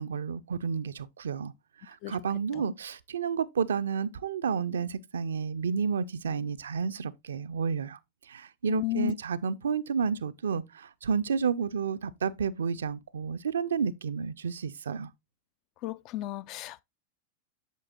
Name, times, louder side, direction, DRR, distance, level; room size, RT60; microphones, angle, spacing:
voice 1, 0.0-1.5 1.8-8.0 8.3-15.1, right 6 dB, 65° right, 0.4 m, -31 dB
voice 2, 8.7-9.1 15.8-16.8, left 15 dB, 40° left, 0.3 m, -33 dB
8.2 x 6.9 x 2.3 m
figure-of-eight pair, 90°, 0 cm